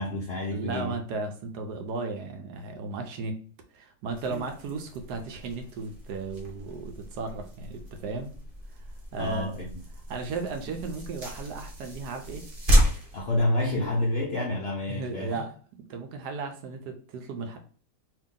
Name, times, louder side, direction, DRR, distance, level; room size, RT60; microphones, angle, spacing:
voice 1, 0.0-1.0 4.3-4.4 9.2-9.7 13.1-15.4, left 1 dB, 60° left, 0.6 m, -29 dB
voice 2, 0.5-3.4 3.7-8.3 9.1-9.6 10.1-12.4 14.9-17.6, right 3 dB, 75° right, 1.2 m, -35 dB
sound 1, 4.1-14.2, equal, 40° right, 0.9 m, -31 dB
2.8 x 2.8 x 3.6 m
omnidirectional pair, 1.8 m